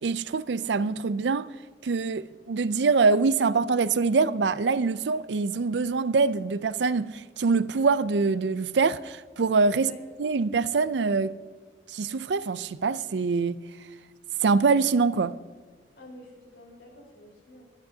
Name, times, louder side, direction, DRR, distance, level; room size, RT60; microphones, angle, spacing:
voice 1, 0.0-1.5 1.8-9.9 10.2-11.4 11.9-13.6 14.4-15.3, right 4 dB, 90° right, 0.5 m, -24 dB
voice 2, 16.0-17.6, left 1 dB, 85° left, 4.4 m, -49 dB
22.0 x 11.0 x 2.8 m
head